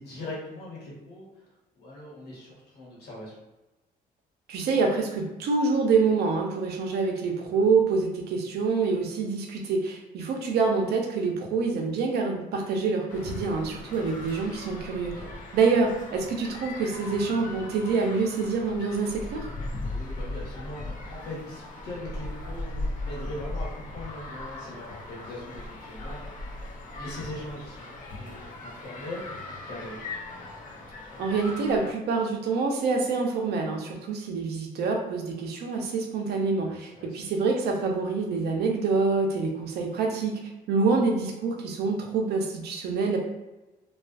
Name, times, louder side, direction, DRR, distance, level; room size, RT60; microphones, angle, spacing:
voice 1, 0.0-3.3 7.5-7.7 15.1-15.4 19.8-30.0 36.6-37.3, left 1 dB, 75° left, -5 dB, 1.1 m, -41 dB
voice 2, 4.5-15.1 15.5-19.5 31.2-40.3 40.7-43.2, right 4 dB, 75° right, 1 dB, 0.6 m, -26 dB
sound 1, 13.1-31.9, left 2 dB, 55° left, 0.5 m, -38 dB
2.5 x 2.3 x 2.3 m, 1.0 s
cardioid pair, 95°, 17 cm